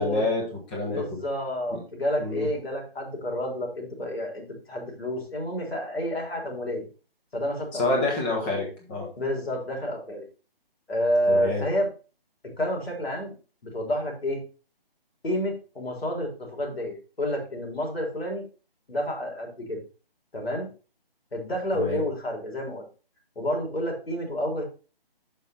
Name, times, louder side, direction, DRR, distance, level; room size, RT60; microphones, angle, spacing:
voice 1, 0.0-1.2 1.7-1.8 2.2-2.5 7.8-9.1 11.3-11.7 21.7-22.0, left 2 dB, 10° left, -1 dB, 1.2 m, -28 dB
voice 2, 0.9-6.8 7.3-8.0 9.2-10.3 10.9-11.9 12.4-13.3 13.6-14.4 15.2-18.4 18.9-19.8 20.3-20.7 21.3-22.8 23.4-24.6, equal, 80° left, 0 dB, 3.6 m, -29 dB
6.8 x 5.6 x 4.3 m, 0.35 s
figure-of-eight pair, 165°, 30 cm